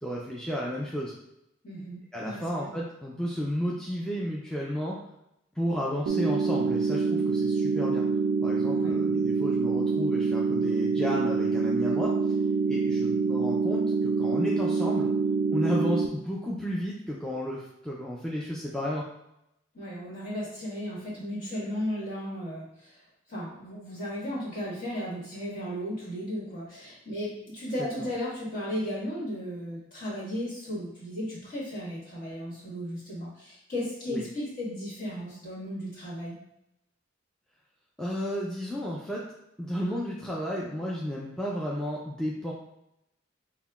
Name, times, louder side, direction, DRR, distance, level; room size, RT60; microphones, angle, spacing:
voice 1, 0.0-1.1 2.1-5.0 5.6-8.1 8.4-12.3 12.7-15.1 15.5-19.0 28.0-28.1 34.1-34.2 38.0-39.2 39.6-42.5, equal, 5° left, -5 dB, 0.3 m, -32 dB
voice 2, 1.6-2.7 8.7-8.9 19.7-23.0 23.3-36.4, equal, 45° left, -7 dB, 1.4 m, -35 dB
sound 1, 6.1-16.1, right 4 dB, 80° right, 0.3 m, -26 dB
5.4 x 2.1 x 2.3 m, 0.83 s
head